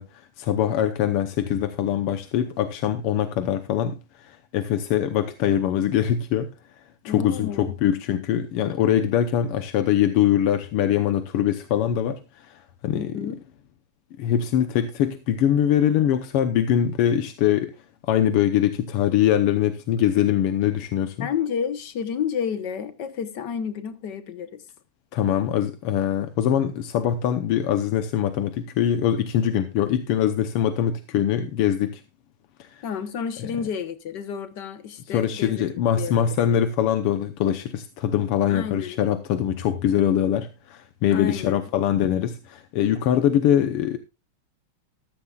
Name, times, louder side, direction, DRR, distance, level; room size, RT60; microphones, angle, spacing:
voice 1, 0.0-13.2 14.2-17.7 18.1-21.3 25.1-32.0 32.6-32.8 35.1-44.0, left 10 dB, 90° left, 1.9 m, -23 dB
voice 2, 7.0-7.7 12.9-13.4 21.2-24.6 32.8-35.6 36.0-36.6 38.5-39.0 41.1-41.6, left 7 dB, 55° left, 1.6 m, -31 dB
14.5 x 13.5 x 2.4 m
omnidirectional pair, 2.4 m